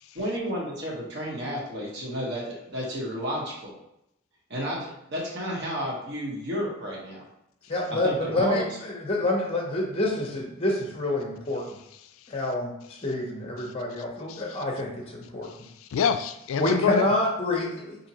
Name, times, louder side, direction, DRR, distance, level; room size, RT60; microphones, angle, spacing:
voice 1, 0.1-3.7 4.5-7.3 8.0-8.6, equal, 55° right, -4 dB, 1.1 m, -32 dB
voice 2, 7.7-11.7 12.3-12.7 13.0-15.5 16.6-18.0, left 2 dB, 30° left, 0 dB, 0.6 m, -27 dB
voice 3, 14.3-14.6 15.4-17.1, left 7 dB, 75° left, 10 dB, 0.3 m, -28 dB
4.9 x 2.7 x 2.8 m, 0.82 s
head